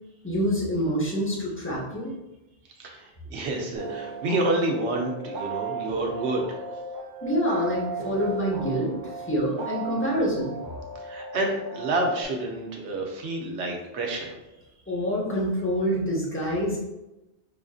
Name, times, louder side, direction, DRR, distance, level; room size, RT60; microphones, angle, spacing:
voice 1, 0.2-2.1 7.2-8.9 9.3-10.5 14.9-16.8, equal, 15° left, -4 dB, 0.7 m, -26 dB
voice 2, 2.8-6.4 11.0-14.3, right 2 dB, 75° right, 1 dB, 1.0 m, -28 dB
sound 1, 3.7-12.2, right 3 dB, 50° right, 0.8 m, -36 dB
5.0 x 2.5 x 2.4 m, 0.99 s
omnidirectional pair, 1.2 m